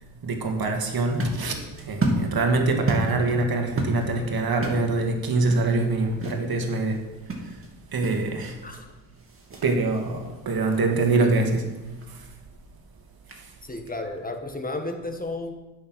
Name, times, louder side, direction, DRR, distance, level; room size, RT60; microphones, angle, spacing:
voice 1, 0.2-7.1 7.4-7.6 7.9-8.6 9.6-12.3 13.3-13.5, right 3 dB, 50° right, 4 dB, 1.9 m, -25 dB
sound 1, 0.8-14.4, right 1 dB, 30° right, 2.3 m, -34 dB
voice 2, 13.6-15.5, left 2 dB, 20° left, 5 dB, 1.6 m, -33 dB
8.7 x 6.7 x 6.3 m, 1.1 s
cardioid pair, 70°, 46 cm